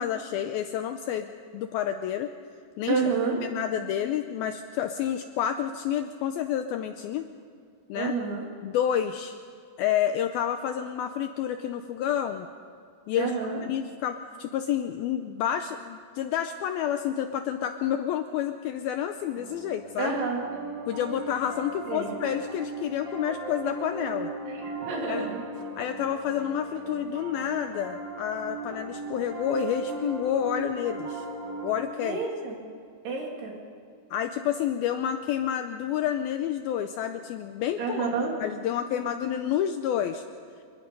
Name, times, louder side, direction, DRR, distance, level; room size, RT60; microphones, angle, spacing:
voice 1, 0.0-2.3 2.8-3.0 3.4-7.3 7.9-8.1 8.6-9.4 9.8-12.5 13.1-13.3 13.6-20.2 20.9-24.3 25.1-25.3 25.8-31.3 31.6-32.2 34.1-38.1 38.4-40.2, left 10 dB, 85° left, 8 dB, 2.2 m, -29 dB
voice 2, 2.9-3.4 7.9-8.5 13.2-13.6 20.0-20.5 21.9-22.1 24.4-25.4 32.0-32.6 33.0-33.6 37.8-38.3, right 4 dB, 65° right, 0 dB, 4.9 m, -29 dB
Piano, 19.4-31.8, right 2 dB, 50° right, 4.1 m, -37 dB
26.0 x 22.5 x 5.4 m, 2.3 s
omnidirectional pair, 5.0 m